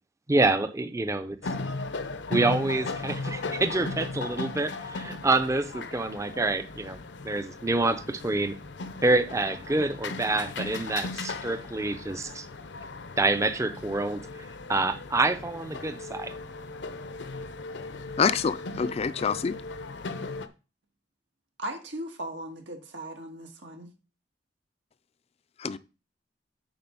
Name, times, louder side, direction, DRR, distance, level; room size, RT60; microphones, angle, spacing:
voice 1, 0.3-1.4 2.3-7.0 7.2-8.6 9.0-12.5 13.2-14.2 14.7-16.3, right 2 dB, 15° right, 0.5 m, -27 dB
sound 1, 1.4-20.5, left 3 dB, 75° left, 0.7 m, -37 dB
voice 2, 18.2-19.6 25.6-25.8, left 6 dB, 35° left, 0.4 m, -26 dB
voice 3, 21.6-23.9, right 1 dB, 90° right, 1.7 m, -38 dB
8.8 x 4.0 x 5.4 m
head